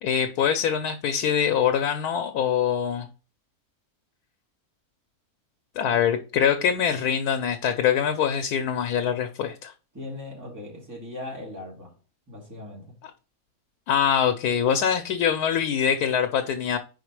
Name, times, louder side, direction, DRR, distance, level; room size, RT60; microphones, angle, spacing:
voice 1, 0.0-3.1 5.8-9.7 13.9-16.8, left 8 dB, 90° left, 1.2 m, -24 dB
voice 2, 9.9-11.9 12.3-13.0, left 2 dB, 10° right, 2.4 m, -39 dB
5.0 x 4.5 x 4.7 m
omnidirectional pair, 1.6 m